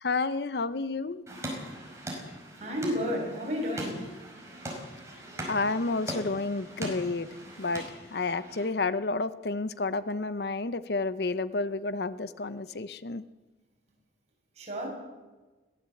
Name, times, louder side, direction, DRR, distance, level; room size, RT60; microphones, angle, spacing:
voice 1, 0.0-1.2 5.5-7.3 7.6-7.8 8.1-13.2, left 3 dB, 60° left, 14 dB, 0.7 m, -30 dB
sound 1, 1.3-8.6, right 1 dB, 15° right, 5.0 m, -40 dB
voice 2, 2.6-4.1 14.6-14.9, equal, 40° right, -1 dB, 7.3 m, -31 dB
21.5 x 16.0 x 7.9 m, 1.2 s
head